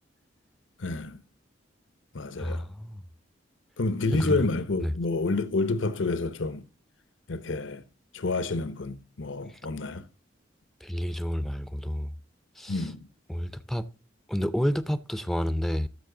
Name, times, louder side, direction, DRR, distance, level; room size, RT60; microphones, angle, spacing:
voice 1, 0.8-1.2 2.1-2.7 3.8-6.7 7.3-7.8 8.1-10.0 12.7-13.0, left 3 dB, 85° left, 0.9 m, -29 dB
voice 2, 2.4-3.0 4.2-4.5 4.8-4.9 10.8-12.1 12.6-12.9 13.3-13.9 14.3-15.9, equal, ahead, 0.5 m, -30 dB
13.5 x 5.6 x 3.8 m
head